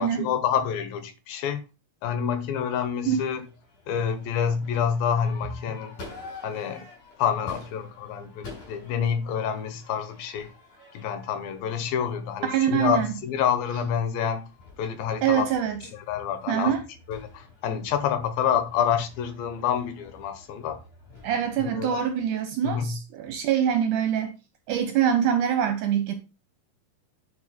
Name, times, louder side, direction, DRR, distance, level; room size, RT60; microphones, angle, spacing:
voice 1, 0.0-1.6 2.0-3.4 3.9-6.0 6.4-6.9 7.2-10.5 10.9-14.4 14.8-15.5 15.9-16.8 17.1-20.8 21.6-22.0 22.6-23.0, left 8 dB, 75° left, 2.7 m, -27 dB
Crowd / Fireworks, 2.6-21.6, left 3 dB, 50° left, 6.6 m, -48 dB
voice 2, 12.4-13.1 15.2-15.8 16.5-16.8 21.2-24.3 24.7-26.1, right 9 dB, 70° right, 2.0 m, -24 dB
10.0 x 4.6 x 4.2 m
omnidirectional pair, 4.4 m